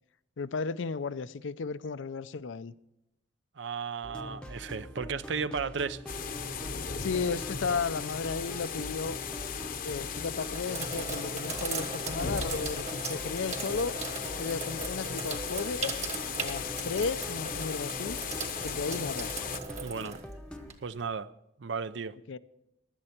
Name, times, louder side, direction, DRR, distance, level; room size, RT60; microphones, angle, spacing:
voice 1, 0.4-2.7 6.9-9.2 9.8-13.9 14.4-16.0 16.4-18.2 18.6-19.3 22.3-22.4, left 4 dB, 80° left, 0.5 m, -34 dB
voice 2, 3.6-6.0 19.8-20.2 20.8-21.3 21.6-22.2, right 5 dB, 70° right, 0.5 m, -34 dB
sound 1, 4.0-20.7, left 1 dB, 5° left, 0.7 m, -44 dB
sound 2, 6.1-19.6, left 7 dB, 50° left, 0.8 m, -37 dB
Sink (filling or washing), 9.0-9.5 10.1-21.0, right 4 dB, 35° right, 1.6 m, -39 dB
16.5 x 12.0 x 4.4 m
head